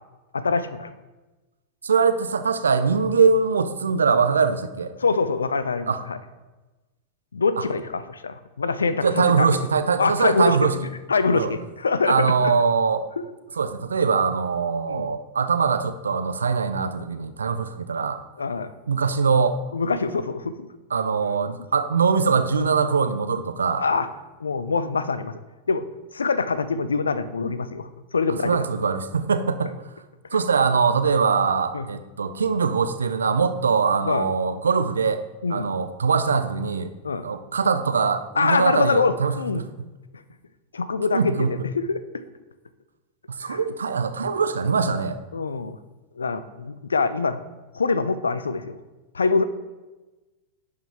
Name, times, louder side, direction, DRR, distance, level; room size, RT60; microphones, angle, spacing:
voice 1, 0.3-0.9 5.0-6.2 7.3-9.5 10.0-10.6 11.1-12.5 13.2-13.3 14.9-15.1 18.4-18.7 19.7-20.7 23.8-24.1 24.4-25.4 25.7-25.9 26.1-28.6 31.7-31.9 34.0-34.3 35.4-35.7 37.0-37.3 38.4-39.6 40.7-42.0 43.4-43.6 45.3-45.8 46.2-47.4 47.7-48.8 49.1-49.4, left 4 dB, 80° left, 13 dB, 0.4 m, -24 dB
voice 2, 1.8-4.9 5.9-6.0 7.6-7.7 9.0-10.8 11.3-11.5 12.1-13.1 13.6-18.2 18.9-19.6 20.9-23.8 28.4-29.7 30.3-35.2 35.5-36.9 37.2-39.7 41.1-41.6 43.3-45.2, right 5 dB, 80° right, 10 dB, 0.5 m, -22 dB
11.0 x 4.8 x 3.5 m, 1.2 s
figure-of-eight pair, 90°, 0 cm